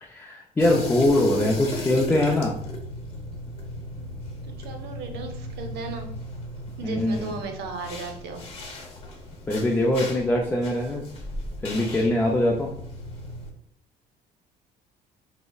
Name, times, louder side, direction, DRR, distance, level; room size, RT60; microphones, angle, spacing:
voice 1, 0.0-2.5 6.8-7.3 9.5-11.0 11.6-12.7, left 1 dB, 15° left, 0 dB, 0.4 m, -23 dB
sound 1, 0.6-13.5, left 1 dB, 35° left, 0.9 m, -36 dB
voice 2, 4.4-6.1 6.8-8.4, right 3 dB, 75° right, 4 dB, 0.7 m, -36 dB
4.9 x 2.0 x 2.3 m, 0.71 s
cardioid pair, 110°, 17 cm